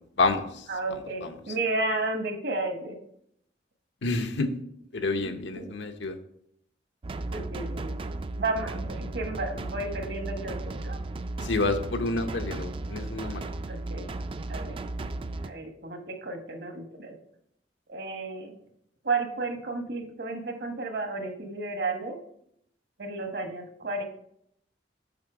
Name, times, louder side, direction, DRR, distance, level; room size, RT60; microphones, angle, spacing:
voice 1, 0.2-0.7 4.0-4.5 4.9-6.1 11.4-13.4, left 3 dB, 85° left, 6 dB, 0.9 m, -28 dB
voice 2, 0.7-3.0 5.1-5.7 7.3-7.9 8.3-11.0 13.7-14.1 14.5-14.8 15.4-17.1 17.9-18.5 19.0-22.2 23.0-24.0, right 3 dB, 65° right, 5 dB, 1.3 m, -32 dB
sound 1, 7.0-15.5, right 2 dB, 30° right, 0.3 m, -35 dB
7.4 x 5.5 x 4.9 m, 0.73 s
head